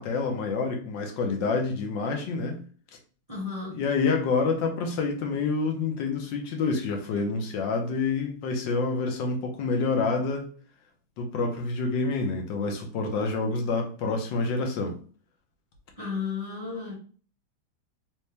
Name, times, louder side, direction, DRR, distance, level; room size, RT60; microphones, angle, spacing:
voice 1, 0.0-2.6 3.7-10.5 11.2-15.0, left 4 dB, 70° left, 1.4 m, -27 dB
voice 2, 3.3-3.8 16.0-16.9, left 5 dB, 45° right, 0.4 m, -33 dB
3.3 x 3.1 x 3.3 m
omnidirectional pair, 2.2 m